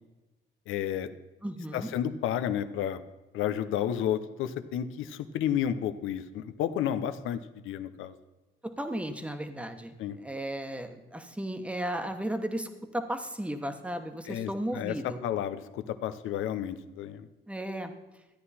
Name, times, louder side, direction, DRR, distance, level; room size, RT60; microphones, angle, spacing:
voice 1, 0.7-1.1 1.7-3.0 3.3-8.1 10.0-10.2 14.3-17.3, left 10 dB, 90° left, 11 dB, 0.7 m, -31 dB
voice 2, 1.4-1.9 8.6-15.2 17.5-17.9, right 1 dB, 5° right, 7 dB, 1.1 m, -35 dB
13.5 x 9.5 x 4.2 m, 1.1 s
cardioid pair, 90°, 20 cm